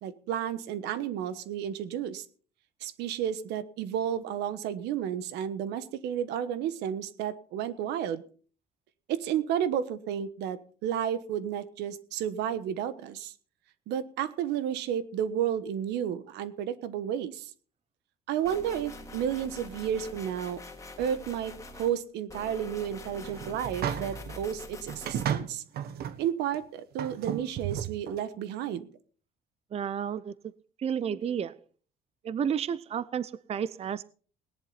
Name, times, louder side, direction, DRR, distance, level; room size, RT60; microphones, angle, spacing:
voice 1, 0.0-2.2 2.8-8.2 9.1-13.3 13.9-17.5 18.3-20.6 21.0-25.6 26.2-28.9, right 9 dB, 85° right, 1.3 m, -32 dB
sound 1, 18.4-21.9 22.3-25.3, left 2 dB, 20° left, 2.4 m, -44 dB
sound 2, 23.2-24.4 24.9-26.2 26.5-26.6 27.0-28.2, right 9 dB, 65° right, 1.3 m, -33 dB
voice 2, 29.7-30.3 30.8-31.5 32.2-34.0, right 8 dB, 40° right, 0.6 m, -31 dB
18.0 x 11.0 x 4.1 m
cardioid pair, 110°, 17 cm